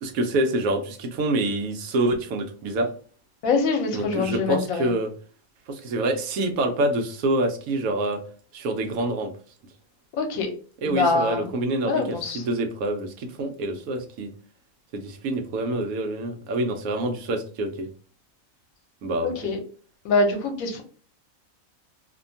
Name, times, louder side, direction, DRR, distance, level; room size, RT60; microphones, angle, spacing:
voice 1, 0.0-2.9 3.9-5.1 5.7-8.2 8.5-9.3 10.8-14.3 14.9-17.9 19.0-19.5, right 2 dB, 85° right, 5 dB, 1.1 m, -26 dB
voice 2, 3.4-4.9 10.2-10.5 10.9-11.5 11.8-12.4 19.2-19.6 20.0-20.8, left 3 dB, 80° left, 4 dB, 1.1 m, -24 dB
2.8 x 2.2 x 2.6 m, 0.41 s
omnidirectional pair, 1.4 m